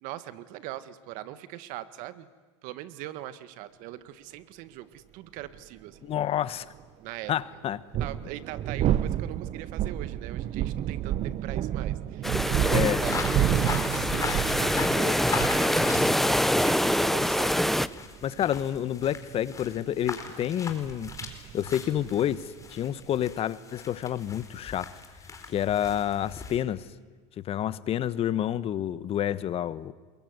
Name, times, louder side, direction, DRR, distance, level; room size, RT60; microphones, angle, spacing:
voice 1, 0.0-2.3 2.6-6.1 7.0-7.3 8.0-14.1 14.6-16.1 16.6-18.0, right 14 dB, 60° right, 13 dB, 1.7 m, -41 dB
sound 1, 5.5-5.6 7.7-23.3, right 11 dB, 45° right, 1.0 m, -31 dB
voice 2, 6.0-6.7 7.3-7.8 12.7-13.0 18.2-21.1 21.5-24.9 25.5-26.9 27.4-29.9, left 10 dB, 40° left, 16 dB, 1.2 m, -29 dB
sound 2, 12.2-17.9, equal, ahead, 0.8 m, -25 dB
sound 3, 13.0-26.6, left 4 dB, 20° left, 4.5 m, -39 dB
27.5 x 22.5 x 9.6 m, 1.4 s
hypercardioid pair, 100°, 15 cm